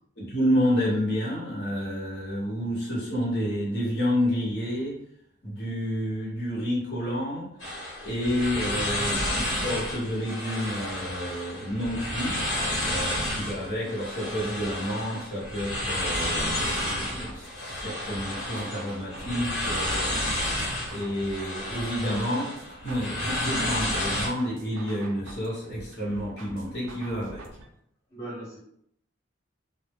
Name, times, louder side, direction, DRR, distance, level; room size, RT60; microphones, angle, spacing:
voice 1, 0.2-5.0 5.4-7.5 8.0-12.4 12.8-20.1 20.9-27.5, equal, 55° left, -4 dB, 1.0 m, -29 dB
sound 1, 7.6-24.3, left 1 dB, 75° left, 1.2 m, -31 dB
sound 2, 15.7-27.7, right 2 dB, 80° right, 0.4 m, -47 dB
voice 2, 28.1-28.6, right 1 dB, 15° left, -8 dB, 0.7 m, -41 dB
2.1 x 2.1 x 3.4 m, 0.71 s
head